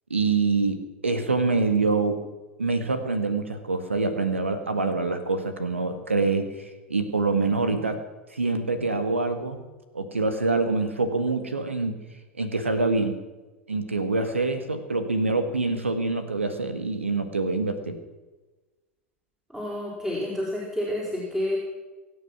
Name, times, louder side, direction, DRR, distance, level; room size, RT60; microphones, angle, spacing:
voice 1, 0.1-0.8 1.0-2.2 2.6-8.0 8.3-9.6 9.9-12.0 12.4-13.2 13.7-18.0, right 3 dB, 80° right, 8 dB, 1.7 m, -25 dB
voice 2, 19.5-21.6, left 1 dB, 5° right, -5 dB, 4.9 m, -29 dB
24.0 x 9.3 x 6.2 m, 1.2 s
figure-of-eight pair, 85°, 7 cm